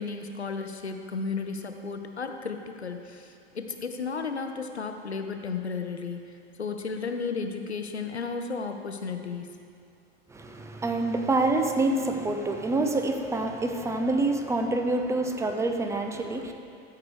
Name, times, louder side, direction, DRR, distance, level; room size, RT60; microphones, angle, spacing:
voice 1, 0.0-6.3 6.6-9.5, left 5 dB, 90° left, 5 dB, 0.7 m, -34 dB
voice 2, 10.3-16.5, right 2 dB, 10° right, 5 dB, 0.7 m, -27 dB
13.5 x 4.8 x 4.7 m, 2.3 s
figure-of-eight pair, 90°, 32 cm